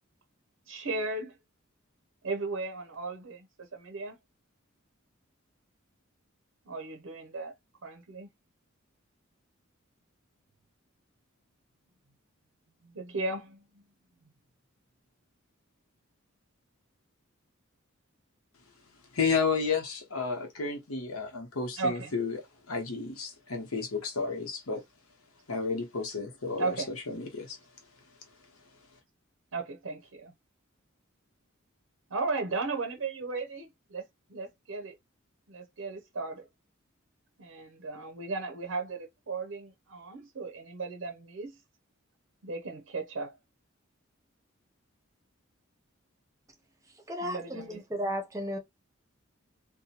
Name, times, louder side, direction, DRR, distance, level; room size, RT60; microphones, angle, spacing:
voice 1, 0.7-1.3 2.2-4.2 6.7-7.5 7.8-8.3 12.8-13.6 21.8-22.1 26.6-26.9 29.5-30.3 32.1-34.0 34.3-34.9 35.5-36.5 37.4-41.6 42.4-43.4 47.2-47.8, right 3 dB, 70° right, 0.6 m, -35 dB
voice 2, 19.1-22.4 22.7-24.8 25.5-26.7 27.1-27.6, left 4 dB, 90° left, 1.0 m, -31 dB
voice 3, 47.1-48.6, equal, 15° right, 0.6 m, -34 dB
2.7 x 2.2 x 2.8 m
head